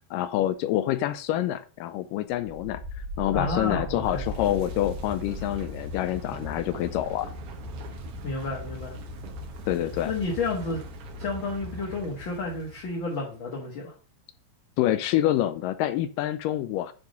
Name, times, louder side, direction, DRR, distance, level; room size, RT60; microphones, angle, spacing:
voice 1, 0.1-2.8 3.2-7.3 9.7-10.1 14.8-16.9, left 13 dB, 80° left, 11 dB, 2.2 m, -27 dB
sound 1, 2.4-13.1, left 1 dB, 65° right, 2.5 m, -38 dB
voice 2, 3.3-4.3 8.2-8.9 10.1-10.8 11.2-13.9, left 3 dB, 45° left, -3 dB, 1.8 m, -31 dB
9.6 x 3.6 x 5.1 m, 0.36 s
omnidirectional pair, 3.9 m